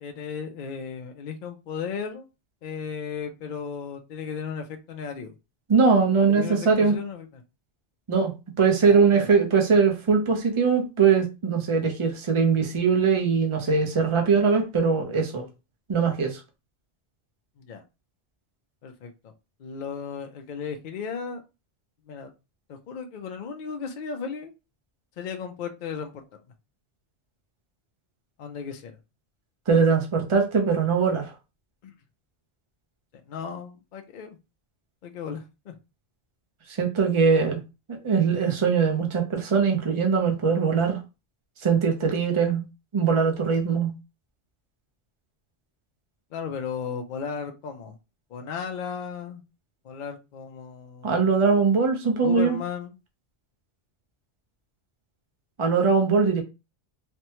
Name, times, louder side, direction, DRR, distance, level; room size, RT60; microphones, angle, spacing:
voice 1, 0.0-2.3 2.6-5.4 6.2-7.4 8.9-9.3 17.6-17.8 18.8-19.3 19.6-21.4 22.1-22.3 22.7-24.5 25.2-26.2 28.4-29.0 31.8-31.9 33.3-34.4 35.0-35.8 46.3-48.0 48.3-49.4 49.8-51.3 52.2-53.0, left 6 dB, 55° left, 0.6 m, -35 dB
voice 2, 5.7-7.0 8.1-8.3 8.6-15.4 15.9-16.4 29.7-31.3 36.7-37.6 38.0-41.0 41.6-42.6 42.9-43.9 51.0-52.6 55.6-56.4, right 5 dB, 30° right, 0.6 m, -21 dB
3.4 x 2.1 x 2.9 m
omnidirectional pair, 1.2 m